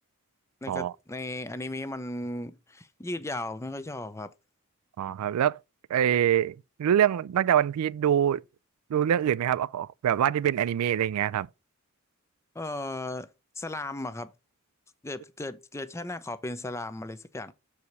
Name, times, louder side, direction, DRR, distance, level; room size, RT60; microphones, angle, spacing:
voice 1, 0.6-4.3 12.6-13.3 13.6-14.3 15.0-17.5, left 2 dB, 15° left, 0.5 m, -36 dB
voice 2, 5.0-5.6 5.9-8.4 8.9-11.5, right 10 dB, 85° right, 0.3 m, -25 dB
6.9 x 4.8 x 4.0 m
head